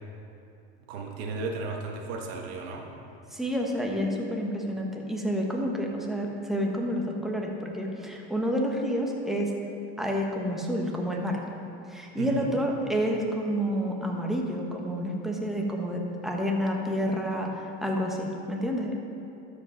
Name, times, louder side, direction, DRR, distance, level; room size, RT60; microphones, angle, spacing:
voice 1, 0.9-2.9 12.2-12.5, right 3 dB, 70° right, 1 dB, 1.5 m, -34 dB
voice 2, 3.3-9.5 10.0-11.4 11.9-18.9, equal, ahead, 0 dB, 1.2 m, -29 dB
12.5 x 5.2 x 5.1 m, 2.7 s
supercardioid pair, 115°, 32 cm